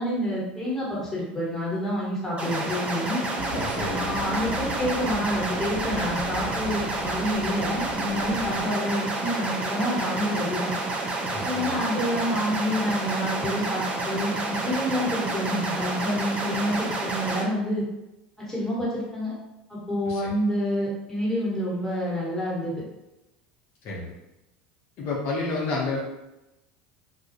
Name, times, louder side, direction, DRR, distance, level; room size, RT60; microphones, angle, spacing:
voice 1, 0.0-3.2 3.9-10.7 11.4-17.8 18.5-19.3 19.7-22.7, equal, 5° left, -6 dB, 1.2 m, -28 dB
sound 1, 2.4-17.4, right 2 dB, 25° right, 0.5 m, -29 dB
sound 2, 3.4-8.7, left 1 dB, 85° left, 0.7 m, -37 dB
voice 2, 3.6-4.1 11.3-11.8 20.1-20.3 23.8-24.1 25.0-26.0, left 3 dB, 55° left, -4 dB, 0.6 m, -30 dB
2.3 x 2.0 x 2.7 m, 0.94 s
hypercardioid pair, 90°, 5 cm